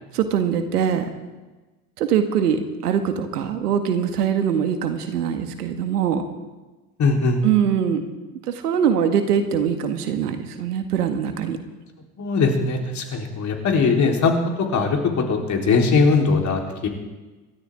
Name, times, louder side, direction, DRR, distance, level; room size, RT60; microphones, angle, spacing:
voice 1, 0.1-1.0 2.0-6.2 7.4-8.0 8.5-11.6, right 8 dB, 80° right, 7 dB, 1.9 m, -22 dB
voice 2, 7.0-7.4 12.2-14.4 14.7-16.9, left 4 dB, 40° left, 1 dB, 3.9 m, -20 dB
27.0 x 13.5 x 3.7 m, 1.2 s
hypercardioid pair, 80°, 46 cm